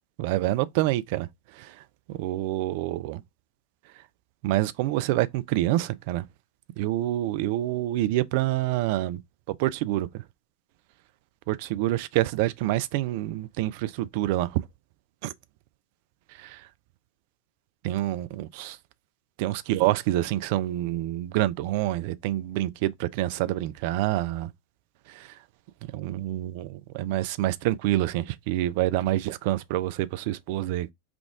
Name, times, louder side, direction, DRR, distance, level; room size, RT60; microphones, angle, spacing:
voice 1, 0.2-1.3 1.6-1.7 2.1-3.2 4.4-6.2 6.8-9.2 9.6-10.2 11.5-14.6 15.2-15.3 16.4-16.6 17.8-18.8 19.4-24.5 25.1-25.3 25.9-30.9, right 15 dB, 50° right, 0.3 m, -27 dB
3.6 x 2.3 x 3.5 m
figure-of-eight pair, 90°, 0 cm